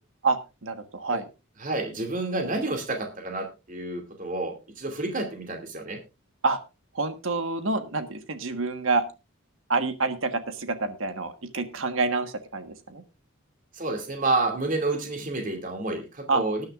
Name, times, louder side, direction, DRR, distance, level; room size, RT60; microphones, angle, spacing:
voice 1, 0.2-1.3 6.4-6.6 6.9-9.0 9.7-13.0 16.3-16.4, right 3 dB, 70° right, 9 dB, 1.4 m, -27 dB
voice 2, 1.6-6.0 13.7-16.7, right 2 dB, 40° right, 4 dB, 2.4 m, -29 dB
19.5 x 10.0 x 2.4 m, 0.28 s
head